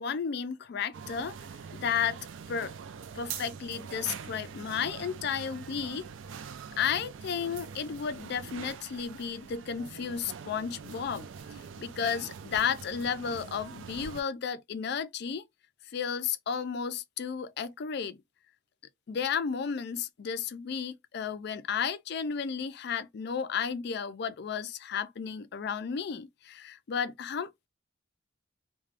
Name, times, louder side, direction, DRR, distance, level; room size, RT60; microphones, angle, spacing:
voice 1, 0.0-1.4 1.7-2.2 2.5-2.7 3.1-6.0 6.8-15.4 15.9-18.2 19.1-27.7, left 7 dB, 55° left, 0.4 m, -33 dB
sound 1, 0.9-14.2, right 6 dB, 75° right, 0.4 m, -44 dB
2.4 x 2.2 x 3.2 m
head